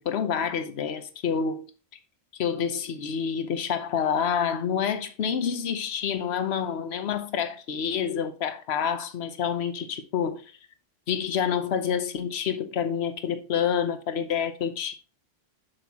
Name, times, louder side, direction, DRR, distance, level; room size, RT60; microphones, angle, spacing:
voice 1, 0.0-1.7 2.4-10.5 11.1-14.9, left 7 dB, 60° left, 1.1 m, -28 dB
7.8 x 6.7 x 2.9 m
omnidirectional pair, 1.3 m